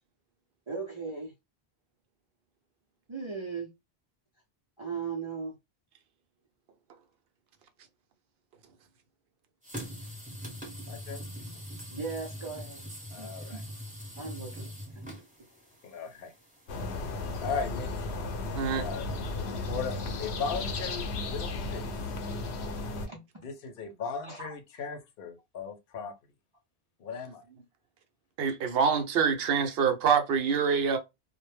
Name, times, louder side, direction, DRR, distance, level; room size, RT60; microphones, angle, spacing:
voice 1, 0.7-1.3 3.1-3.7 4.8-5.5 11.9-12.8 13.2-13.3 14.2-14.7 14.9-15.0 23.1-23.4 24.2-24.6, right 5 dB, 40° right, 0.5 m, -37 dB
sound 1, 9.6-17.5, equal, 10° right, 0.7 m, -43 dB
voice 2, 10.9-11.2 13.1-13.6 14.6-14.7 15.8-16.3 17.4-18.1 18.8-19.1 19.3-21.9 23.4-26.1 27.0-27.4, left 5 dB, 65° left, 0.8 m, -37 dB
sound 2, 16.7-23.1, left 2 dB, 90° left, 0.9 m, -34 dB
voice 3, 28.4-31.0, right 6 dB, 70° right, 0.8 m, -25 dB
2.1 x 2.0 x 3.0 m
omnidirectional pair, 1.1 m